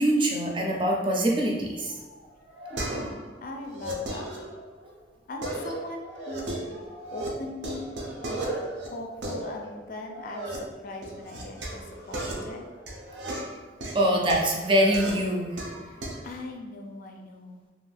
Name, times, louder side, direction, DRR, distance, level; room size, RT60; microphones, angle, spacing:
voice 1, 0.0-1.9 13.9-15.6, right 1 dB, 30° right, -1 dB, 0.4 m, -24 dB
sound 1, 1.9-3.3 3.6-4.9 5.4-7.3 7.6-10.6 11.0-16.3, right 1 dB, 75° right, 0.5 m, -36 dB
voice 2, 2.7-4.3 5.3-6.6 7.1-7.9 8.3-8.4 8.8-12.7 15.8-17.6, left 2 dB, 50° left, 2 dB, 0.4 m, -40 dB
2.5 x 2.2 x 3.3 m, 1.4 s
head